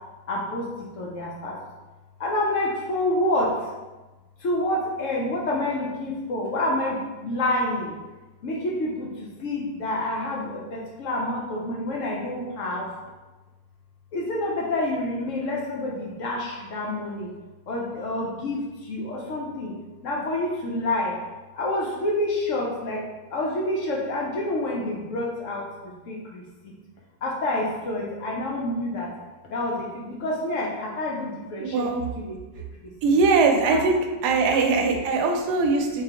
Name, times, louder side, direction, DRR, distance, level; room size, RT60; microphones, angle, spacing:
voice 1, 0.3-0.7 1.0-1.5 2.2-3.5 4.4-7.9 8.4-12.9 14.1-17.3 17.7-19.7 20.0-21.2 21.5-23.0 23.3-25.7 26.1-26.4 27.2-29.1 29.5-31.9 32.2-32.4 32.8-32.9 34.7-34.9, left 1 dB, 65° left, -3 dB, 0.8 m, -28 dB
voice 2, 31.6-32.0 33.0-34.0 34.2-36.0, right 4 dB, 90° right, 3 dB, 1.2 m, -21 dB
3.6 x 3.2 x 2.8 m, 1.2 s
omnidirectional pair, 1.7 m